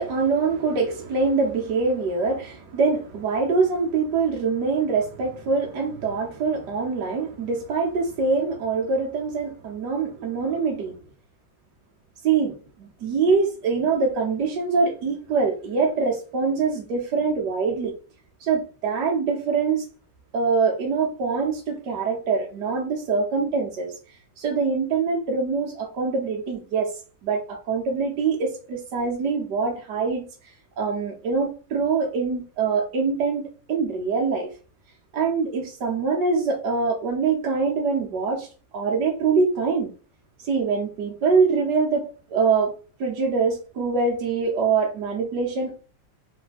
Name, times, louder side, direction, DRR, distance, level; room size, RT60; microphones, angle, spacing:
voice 1, 0.0-10.9 12.2-17.9 18.4-19.8 20.3-23.9 24.4-26.9 27.2-34.5 35.1-38.5 38.7-39.9 40.4-42.7 43.0-45.8, right 4 dB, 65° right, 1.4 m, -24 dB
3.8 x 2.7 x 4.0 m
omnidirectional pair, 2.0 m